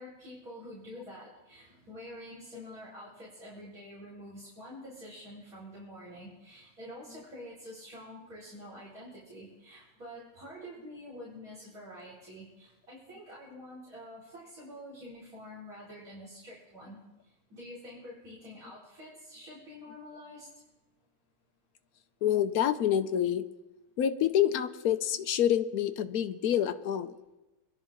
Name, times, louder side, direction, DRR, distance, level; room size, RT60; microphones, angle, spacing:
voice 1, 0.0-20.5, equal, 40° right, -9 dB, 5.1 m, -47 dB
voice 2, 22.2-23.5 24.0-27.1, left 10 dB, 65° left, 10 dB, 0.9 m, -27 dB
24.5 x 11.5 x 3.7 m, 1.0 s
omnidirectional pair, 2.3 m